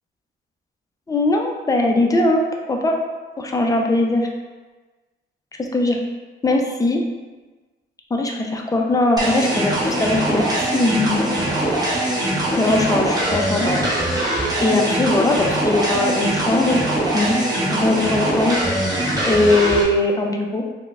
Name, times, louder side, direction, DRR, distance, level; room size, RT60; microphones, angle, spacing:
voice 1, 1.1-3.0 3.4-4.3 5.6-6.0 6.4-7.0 8.1-11.6 12.6-14.3 14.6-16.8 17.1-17.4 17.7-18.6 19.2-20.6, left 2 dB, 15° left, 1 dB, 0.4 m, -20 dB
sound 1, 9.2-19.8, right 1 dB, 20° right, 0.8 m, -22 dB
3.9 x 2.1 x 2.3 m, 1.3 s
cardioid pair, 90°, 20 cm